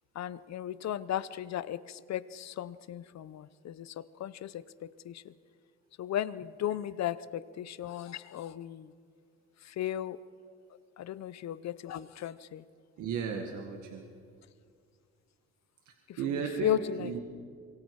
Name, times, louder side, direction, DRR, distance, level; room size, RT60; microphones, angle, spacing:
voice 1, 0.2-5.2 6.0-8.9 9.7-10.2 11.0-12.6 16.1-16.2 16.6-17.2, left 10 dB, 60° left, 16 dB, 0.8 m, -35 dB
voice 2, 13.0-14.1 15.9-17.2, right 6 dB, 90° right, 3 dB, 1.9 m, -35 dB
26.0 x 23.5 x 4.8 m, 2.2 s
cardioid pair, 90°, 30 cm